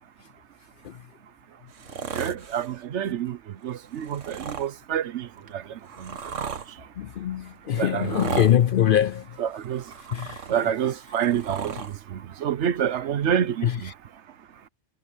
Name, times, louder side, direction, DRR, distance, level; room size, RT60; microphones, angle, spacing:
sound 1, 1.7-2.8 3.9-4.7 5.5-6.7 8.0-8.6 9.6-10.7 11.0-11.9 13.0-13.1, right 6 dB, 85° right, 1.6 m, -35 dB
voice 1, 2.1-3.4 3.6-6.3 7.7-8.5 9.4-9.8 10.5-13.9, right 9 dB, 70° right, 1.1 m, -28 dB
voice 2, 7.0-9.2 10.1-10.4 13.6-13.7, left 10 dB, 60° left, 0.6 m, -22 dB
omnidirectional pair, 1.2 m